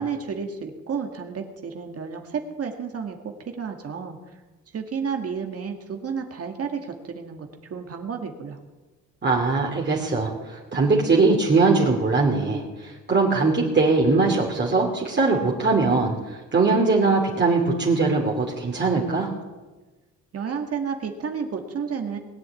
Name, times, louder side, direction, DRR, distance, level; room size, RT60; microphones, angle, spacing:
voice 1, 0.0-3.2 3.5-4.2 4.7-8.6 20.3-22.2, right 6 dB, 50° right, 4 dB, 1.9 m, -31 dB
voice 2, 9.2-19.3, right 3 dB, 35° right, -2 dB, 2.9 m, -21 dB
20.5 x 8.0 x 8.4 m, 1.2 s
cardioid pair, 90°, 30 cm